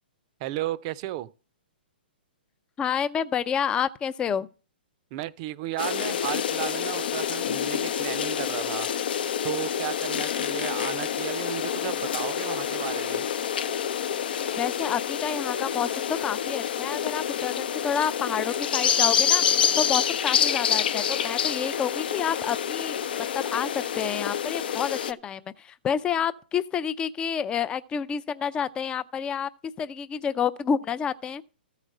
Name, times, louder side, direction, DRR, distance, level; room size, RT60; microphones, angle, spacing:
voice 1, 0.4-1.3 5.1-8.9 9.4-13.3, right 15 dB, 40° right, 0.6 m, -34 dB
voice 2, 2.8-4.5 14.6-19.4 19.8-23.0 23.3-29.5 29.8-31.4, left 7 dB, 15° left, 0.5 m, -29 dB
sound 1, 5.8-25.1, left 8 dB, 65° left, 0.7 m, -27 dB
14.0 x 4.9 x 6.5 m
hypercardioid pair, 135°, 6 cm